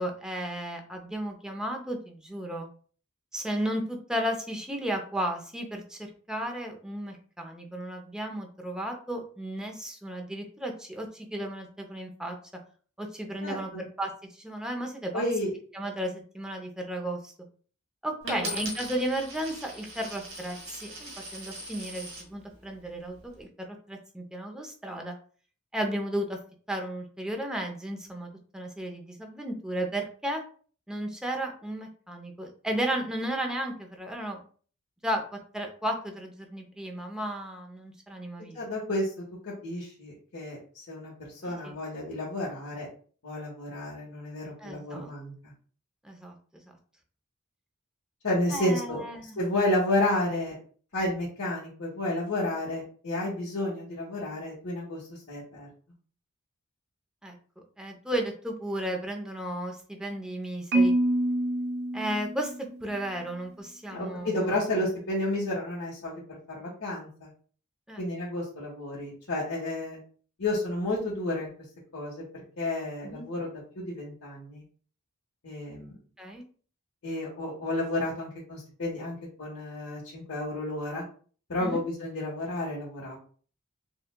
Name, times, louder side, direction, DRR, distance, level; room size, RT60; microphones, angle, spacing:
voice 1, 0.0-2.7 3.3-12.4 13.0-15.2 15.7-17.3 18.0-25.2 25.7-26.4 26.7-28.3 28.5-30.4 30.9-34.4 35.0-38.6 44.6-45.1 46.0-46.3 48.5-49.4 57.2-57.3 57.8-60.9 61.9-62.5 62.8-64.6 67.9-68.0 73.0-73.3 76.2-76.4 81.6-81.8, right 1 dB, 5° right, 2 dB, 0.6 m, -34 dB
voice 2, 13.4-13.8 15.1-15.5 18.2-18.5 38.5-39.1 39.4-42.9 43.2-45.5 48.2-49.0 49.4-50.6 50.9-55.7 63.9-67.3 68.0-70.0 70.4-71.5 71.9-74.6 75.4-76.0 77.0-81.0 81.5-83.2, left 1 dB, 85° left, -6 dB, 1.2 m, -31 dB
Coin (dropping), 18.3-22.3 23.0-23.4, right 1 dB, 75° right, 1.7 m, -40 dB
Marimba xylophone, 60.7-62.9, right 1 dB, 50° right, 0.5 m, -26 dB
6.6 x 2.3 x 2.2 m, 0.43 s
head